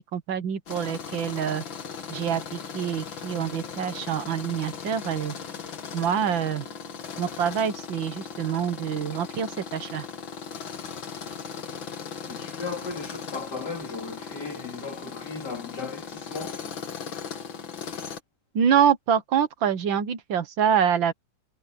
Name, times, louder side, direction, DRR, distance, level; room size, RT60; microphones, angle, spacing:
voice 1, 0.0-1.6 2.1-5.3 5.9-6.6 7.2-10.1 18.6-21.1, right 8 dB, 80° right, 2.0 m, -26 dB
Tools, 0.7-18.2, left 6 dB, 85° left, 2.5 m, -38 dB
voice 2, 12.3-16.7, left 4 dB, 60° left, 3.3 m, -36 dB
omnidirectional pair, 2.1 m